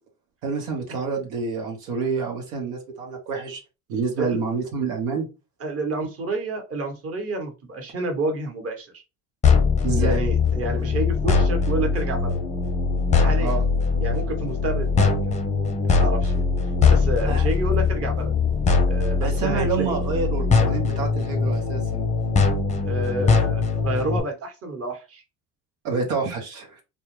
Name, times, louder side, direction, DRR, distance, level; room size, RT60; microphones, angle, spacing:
voice 1, 0.4-3.6 3.9-5.3 9.8-10.3 13.4-13.6 17.2-17.4 19.2-22.1 25.8-26.8, right 5 dB, 80° right, 1 dB, 1.0 m, -28 dB
voice 2, 5.6-9.0 10.0-12.4 13.2-13.5 14.0-15.4 15.8-18.3 18.9-20.0 22.8-25.2, right 2 dB, 35° right, 3 dB, 1.0 m, -29 dB
sound 1, 9.4-24.2, left 5 dB, 15° left, 0.6 m, -21 dB
2.2 x 2.1 x 3.0 m, 0.28 s
hypercardioid pair, 75°, 44 cm